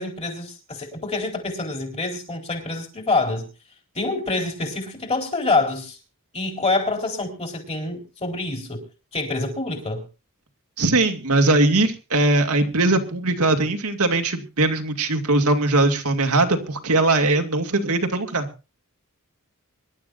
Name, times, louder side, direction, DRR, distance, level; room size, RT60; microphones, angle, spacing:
voice 1, 0.0-3.5 3.9-6.0 6.3-8.8 9.1-10.0, left 3 dB, 30° left, 4.1 m, -26 dB
voice 2, 10.8-18.5, right 2 dB, 80° right, 2.3 m, -20 dB
25.0 x 12.0 x 2.6 m
head